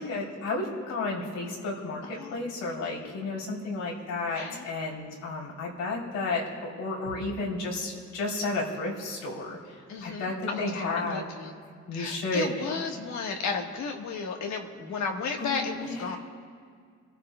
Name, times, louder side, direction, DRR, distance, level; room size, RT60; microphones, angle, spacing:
voice 1, 0.0-11.2 11.9-12.7 15.4-16.2, left 2 dB, 85° left, -3 dB, 3.2 m, -32 dB
voice 2, 4.3-4.7 9.9-11.5 11.9-16.2, left 5 dB, 65° left, 2 dB, 1.4 m, -33 dB
28.0 x 13.5 x 2.2 m, 2.1 s
cardioid pair, 90°, 30 cm